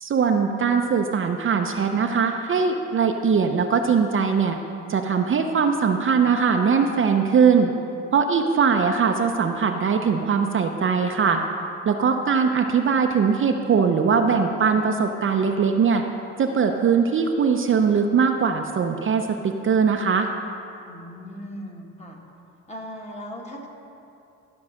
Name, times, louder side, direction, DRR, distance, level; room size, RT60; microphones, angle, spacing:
voice 1, 0.0-4.6 4.9-7.7 8.1-11.4 11.9-16.0 16.4-20.3, right 6 dB, 45° right, 4 dB, 0.6 m, -21 dB
voice 2, 20.9-22.2 22.7-23.7, equal, 20° left, 0 dB, 1.6 m, -38 dB
13.0 x 4.7 x 6.4 m, 2.8 s
cardioid pair, 90°, 30 cm